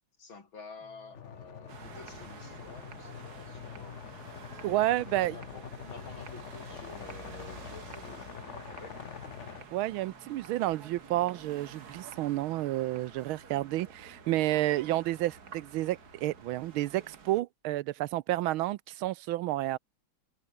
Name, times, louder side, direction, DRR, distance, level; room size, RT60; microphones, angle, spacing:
voice 1, 0.2-4.0 4.5-4.6 5.1-8.9, left 4 dB, 65° left, 4.4 m, -50 dB
sound 1, 0.8-16.8, left 7 dB, 85° left, 3.1 m, -62 dB
sound 2, 1.1-9.6, left 8 dB, 50° left, 0.9 m, -45 dB
sound 3, 1.7-17.4, right 6 dB, 50° right, 2.2 m, -50 dB
voice 2, 4.6-5.4 9.7-19.8, right 16 dB, 80° right, 1.4 m, -30 dB
omnidirectional pair, 2.3 m